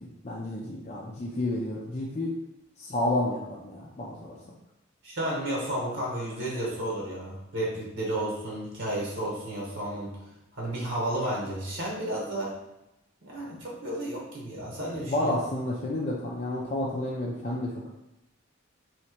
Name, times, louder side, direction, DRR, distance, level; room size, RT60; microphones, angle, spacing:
voice 1, 0.0-2.3 2.8-4.4 15.1-17.9, left 1 dB, 35° left, -3 dB, 0.5 m, -30 dB
voice 2, 5.0-10.2 10.5-12.5 13.2-15.4, right 1 dB, 65° right, -4 dB, 1.2 m, -32 dB
3.2 x 3.0 x 4.4 m, 0.91 s
head